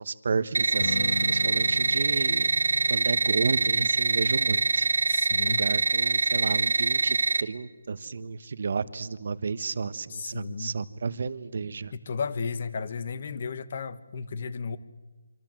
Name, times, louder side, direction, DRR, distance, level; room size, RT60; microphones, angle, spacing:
voice 1, 0.0-2.5 2.9-4.9 5.4-11.9, right 5 dB, 45° right, 14 dB, 1.2 m, -32 dB
sound 1, 0.5-7.4, right 3 dB, 75° right, 1.3 m, -24 dB
Strum, 0.8-7.1, left 2 dB, 65° left, 6.6 m, -39 dB
voice 2, 5.1-5.7 10.1-10.8 11.9-14.8, left 5 dB, 35° left, 15 dB, 1.2 m, -34 dB
26.5 x 25.0 x 7.6 m, 1.2 s
hypercardioid pair, 175°, 0 cm